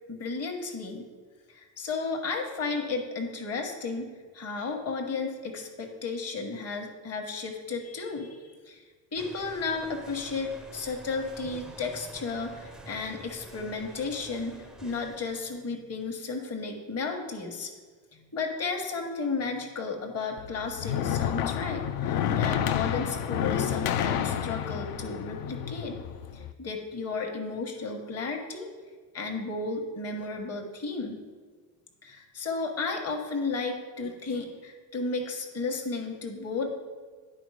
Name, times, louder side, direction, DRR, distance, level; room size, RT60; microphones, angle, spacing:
voice 1, 0.1-1.0 1.5-8.8 9.1-17.7 18.1-26.0 26.3-28.7 29.1-31.2 32.0-36.8, left 4 dB, 35° left, 2 dB, 1.3 m, -33 dB
sound 1, 9.2-15.7, right 1 dB, ahead, 0.4 m, -48 dB
sound 2, 20.4-26.5, left 9 dB, 60° left, 0.6 m, -30 dB
9.5 x 4.0 x 4.9 m, 1.5 s
hypercardioid pair, 75°, 46 cm